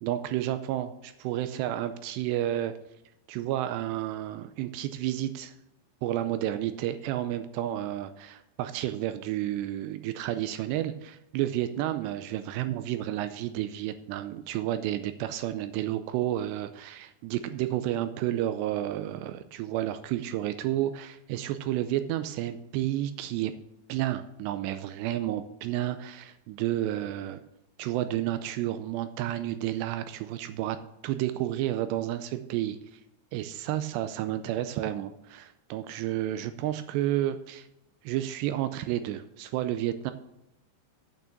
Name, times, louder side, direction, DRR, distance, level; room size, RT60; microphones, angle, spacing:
voice 1, 0.0-2.8 3.3-5.5 6.0-23.5 23.9-27.4 27.8-30.8 31.0-32.8 33.3-37.7 38.0-40.1, right 13 dB, 80° right, 10 dB, 2.5 m, -31 dB
8.5 x 6.6 x 7.2 m, 0.83 s
omnidirectional pair, 5.3 m